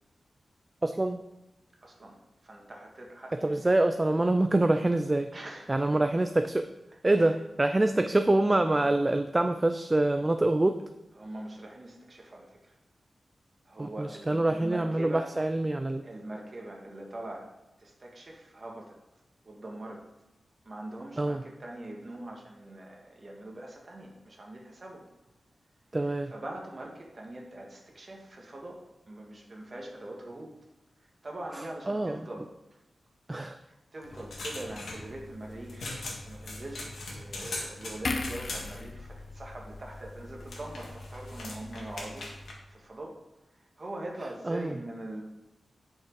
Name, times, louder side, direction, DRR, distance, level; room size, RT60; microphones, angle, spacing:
voice 1, 0.8-1.2 3.4-5.3 5.7-6.7 7.0-10.8 13.8-16.0 21.2-21.4 25.9-26.3 31.9-32.2 33.3-33.6 44.4-44.7, right 2 dB, 20° right, 8 dB, 0.3 m, -25 dB
voice 2, 1.8-2.2 2.4-3.7 5.3-5.7 7.0-7.4 11.1-12.7 13.6-15.3 16.0-17.5 17.8-18.9 19.4-20.0 20.6-25.1 26.0-30.5 31.0-32.5 33.7-43.2 43.8-45.2, right 1 dB, 35° right, 0 dB, 1.6 m, -43 dB
sound 1, 34.0-42.5, left 2 dB, 80° left, 1.8 m, -41 dB
sound 2, 38.0-41.4 41.8-41.9, left 3 dB, 45° left, 0.6 m, -38 dB
8.8 x 6.0 x 4.7 m, 0.95 s
wide cardioid pair, 160°, 0 cm